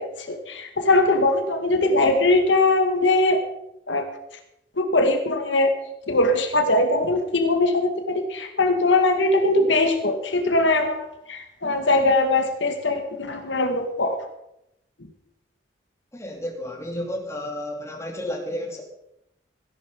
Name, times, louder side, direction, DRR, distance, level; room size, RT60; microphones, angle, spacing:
voice 1, 0.0-3.4 3.9-4.1 4.8-5.7 6.1-14.2, left 2 dB, 75° left, 6 dB, 2.0 m, -21 dB
voice 2, 16.1-18.8, left 1 dB, 15° left, 1 dB, 2.9 m, -32 dB
16.5 x 11.0 x 5.3 m, 0.84 s
head